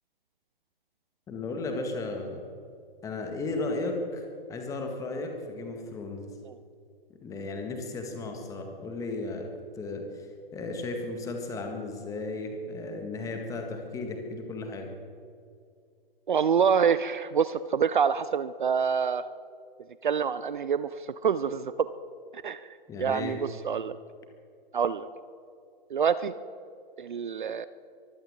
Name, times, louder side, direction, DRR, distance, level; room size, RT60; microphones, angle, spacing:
voice 1, 1.3-2.4 3.0-4.2 4.5-6.3 7.2-9.5 9.8-14.9 22.9-23.4, left 2 dB, 10° left, 4 dB, 1.7 m, -35 dB
voice 2, 16.3-19.3 20.0-20.9 21.2-21.9 22.3-22.6 23.0-24.0 24.7-25.1 25.9-26.3 27.0-27.7, right 7 dB, 55° right, 15 dB, 0.6 m, -26 dB
23.0 x 15.5 x 3.7 m, 2.4 s
figure-of-eight pair, 125°, 29 cm